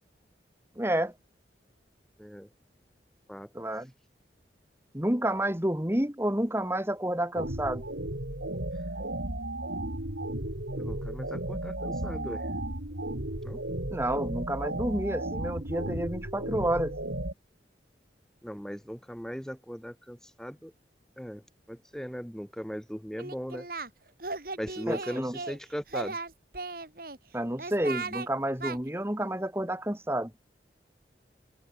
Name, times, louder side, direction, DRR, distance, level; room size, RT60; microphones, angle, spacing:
voice 1, 0.8-1.1 3.5-3.9 4.9-7.8 13.9-17.0 24.9-25.3 27.3-30.3, right 1 dB, 15° right, 1.8 m, -30 dB
voice 2, 2.2-2.5 3.3-3.5 10.8-12.4 13.4-13.6 18.4-20.7 21.2-23.7 24.6-26.2, equal, 5° left, 6.3 m, -38 dB
sound 1, 7.4-17.3, right 1 dB, 80° right, 4.0 m, -34 dB
Singing, 23.2-23.9 24.2-25.6 25.9-27.2 27.6-28.3 28.6-28.8, right 3 dB, 55° right, 2.9 m, -36 dB
head